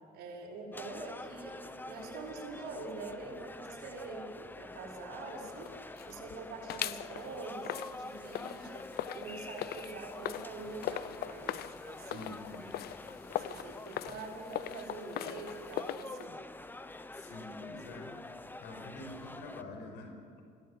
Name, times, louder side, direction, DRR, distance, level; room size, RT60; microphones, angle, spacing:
voice 1, 0.1-1.6 1.9-4.3 4.6-5.7 6.0-8.8 9.1-12.3 12.9-13.0 13.4-16.4, right 3 dB, 80° right, -2 dB, 6.3 m, -45 dB
sound 1, 0.7-19.6, left 2 dB, 10° left, 1.0 m, -47 dB
sound 2, 5.2-6.3 6.7-16.3, left 13 dB, 65° left, 0.7 m, -41 dB
voice 2, 12.1-12.7 17.1-20.4, left 2 dB, 90° left, 4 dB, 5.4 m, -47 dB
26.5 x 17.5 x 8.1 m, 2.3 s
cardioid pair, 110°, 17 cm